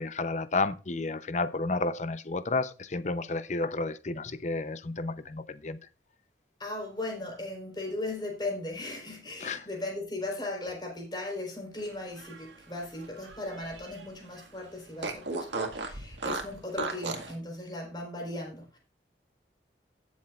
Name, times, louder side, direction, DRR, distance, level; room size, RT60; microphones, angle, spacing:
voice 1, 0.0-5.8 9.4-9.7, left 3 dB, 40° left, 0.7 m, -31 dB
voice 2, 6.6-18.8, left 2 dB, 25° left, 4.3 m, -37 dB
Fart, 12.0-14.1 14.4-14.5 15.0-17.3, right 3 dB, 90° right, 1.9 m, -36 dB
17.0 x 7.3 x 2.5 m
head